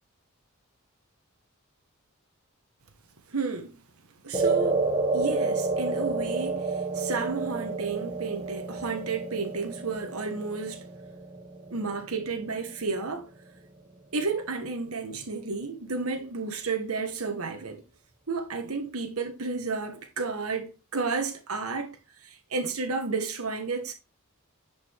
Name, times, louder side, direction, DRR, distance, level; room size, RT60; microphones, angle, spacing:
voice 1, 3.3-3.8 4.2-4.9 5.1-10.8 11.7-13.3 14.1-17.8 18.3-23.9, right 4 dB, 85° right, 1.5 m, -32 dB
sound 1, 4.3-12.8, right 3 dB, 25° right, 1.0 m, -30 dB
11.0 x 5.1 x 3.6 m
head